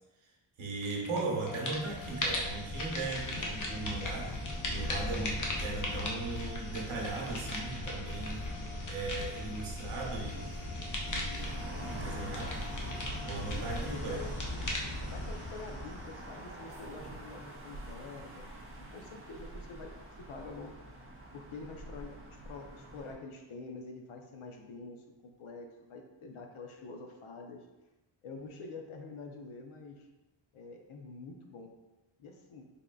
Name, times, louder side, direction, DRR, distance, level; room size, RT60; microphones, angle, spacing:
voice 1, 0.6-4.4 4.7-8.4 8.9-10.5 11.0-12.6 13.2-14.3, right 3 dB, 90° right, -1 dB, 0.9 m, -38 dB
sound 1, 0.8-1.2 1.5-16.5, left 1 dB, 40° left, 0.6 m, -37 dB
sound 2, 1.3-13.8, left 1 dB, 5° left, 0.7 m, -52 dB
sound 3, 11.4-23.1, right 1 dB, 30° right, 0.4 m, -46 dB
voice 2, 13.6-14.4 15.1-18.5 18.9-20.7 21.3-27.7 28.2-30.1 30.5-31.7 32.2-32.6, left 3 dB, 85° left, 3 dB, 0.6 m, -47 dB
3.6 x 3.6 x 2.2 m, 1.0 s
wide cardioid pair, 175°, 48 cm